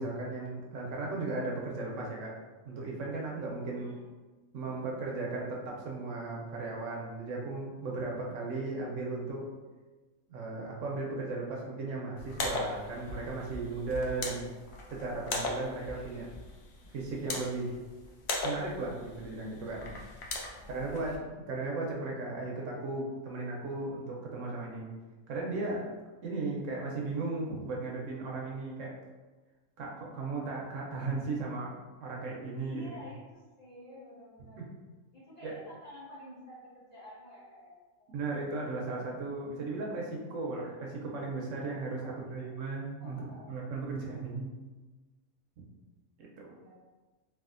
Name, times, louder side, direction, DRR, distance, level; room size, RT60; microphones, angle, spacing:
voice 1, 0.0-2.3 2.6-4.0 4.5-9.4 10.3-14.5 14.9-16.3 16.9-17.7 18.4-19.9 20.7-24.9 25.3-25.8 26.2-28.9 29.8-31.7 32.0-32.8 34.6-34.7 35.4-35.6 38.1-44.5 46.2-46.5, right 3 dB, 70° right, -2 dB, 0.9 m, -36 dB
voice 2, 3.7-4.1 14.1-14.6 20.5-21.1 32.6-34.6 35.1-38.1 41.9-43.6 46.5-46.8, left 1 dB, 35° left, -9 dB, 0.9 m, -51 dB
sound 1, 12.2-21.2, left 2 dB, 65° left, 0.7 m, -39 dB
3.3 x 2.4 x 2.4 m, 1.3 s
omnidirectional pair, 1.4 m